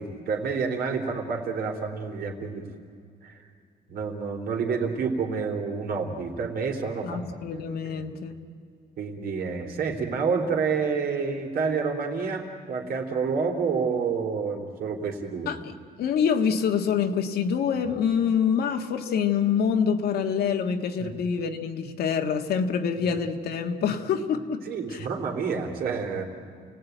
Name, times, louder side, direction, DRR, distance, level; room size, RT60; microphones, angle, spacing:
voice 1, 0.0-2.7 3.2-3.5 3.9-7.2 7.8-8.1 9.0-15.5 17.7-17.8 21.0-21.1 23.0-23.1 24.7-26.2, right 5 dB, 60° right, 2 dB, 3.6 m, -29 dB
voice 2, 7.0-8.4 15.5-24.6 24.9-25.1, left 7 dB, 70° left, 6 dB, 1.7 m, -26 dB
29.5 x 18.5 x 9.3 m, 2.3 s
cardioid pair, 145°, 17 cm